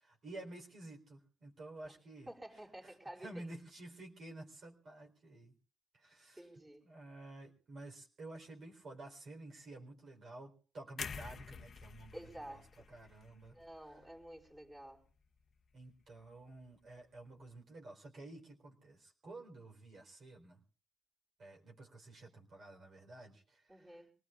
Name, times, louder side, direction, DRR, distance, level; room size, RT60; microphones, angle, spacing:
voice 1, 0.0-2.3 2.8-2.9 3.2-5.5 5.9-6.5 6.8-12.6 12.9-13.6 15.7-20.6 21.4-23.7, right 2 dB, 55° right, 0 dB, 4.0 m, -52 dB
voice 2, 2.3-3.5 6.3-6.9 12.1-12.9 13.5-15.0 23.7-24.1, right 1 dB, 15° right, -2 dB, 4.6 m, -51 dB
sound 1, 11.0-15.0 15.4-15.6, left 6 dB, 50° left, 0.8 m, -49 dB
27.0 x 18.5 x 2.4 m, 0.40 s
cardioid pair, 90°, 0 cm